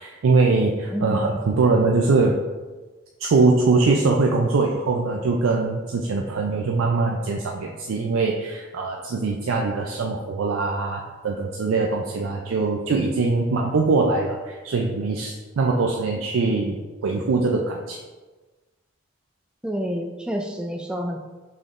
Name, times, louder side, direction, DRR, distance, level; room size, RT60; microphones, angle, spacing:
voice 1, 0.0-2.4 3.2-18.0, right 3 dB, 80° right, 0 dB, 0.4 m, -22 dB
voice 2, 0.9-1.4 19.6-21.2, equal, 5° right, 2 dB, 0.3 m, -29 dB
5.7 x 3.5 x 2.5 m, 1.3 s
head